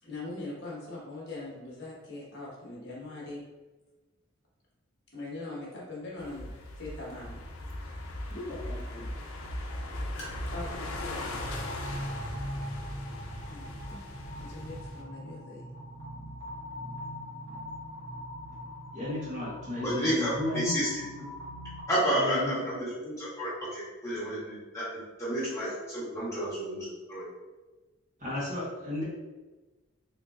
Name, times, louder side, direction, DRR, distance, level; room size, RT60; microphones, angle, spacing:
voice 1, 0.0-3.4 5.1-7.4 8.3-9.2 10.1-11.5 13.5-14.0 14.4-15.7, left 2 dB, 55° left, -5 dB, 1.1 m, -41 dB
sound 1, 6.2-15.0, left 1 dB, 85° left, 0.5 m, -39 dB
sound 2, 11.4-21.8, equal, 65° right, 1.4 m, -41 dB
voice 2, 18.9-20.8 22.2-22.6 28.2-29.0, left 2 dB, 35° right, -6 dB, 1.1 m, -34 dB
voice 3, 19.8-21.0 21.9-27.2, equal, 15° left, -10 dB, 1.2 m, -31 dB
3.7 x 2.7 x 2.4 m, 1.2 s
head